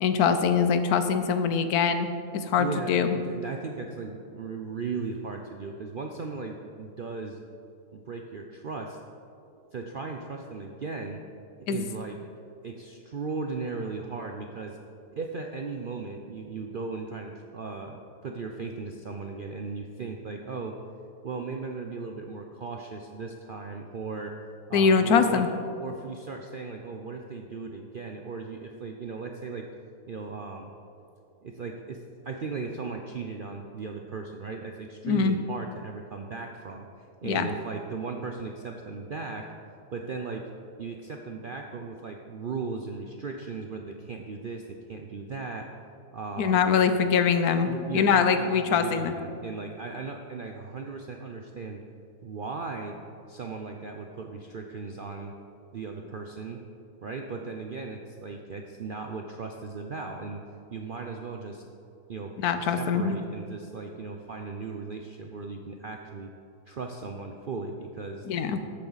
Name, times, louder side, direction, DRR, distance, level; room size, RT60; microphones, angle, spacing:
voice 1, 0.0-2.1 2.3-3.2 11.7-11.9 24.7-25.5 35.0-35.4 37.2-37.5 46.4-49.1 62.4-63.2 68.3-68.6, left 6 dB, 75° left, 9 dB, 1.2 m, -23 dB
voice 2, 2.6-7.4 7.9-9.0 9.7-11.2 11.6-12.2 12.6-14.8 15.1-20.8 21.2-24.3 24.7-25.5 25.8-29.7 30.1-30.7 31.4-39.5 39.9-40.5 40.8-45.7 46.1-46.6 47.6-51.8 52.2-53.0 53.3-55.3 55.7-56.6 57.0-60.4 60.7-61.6 62.1-66.3 66.7-68.3, right 4 dB, 60° right, 3 dB, 0.5 m, -37 dB
13.0 x 8.6 x 4.0 m, 2.6 s
omnidirectional pair, 1.6 m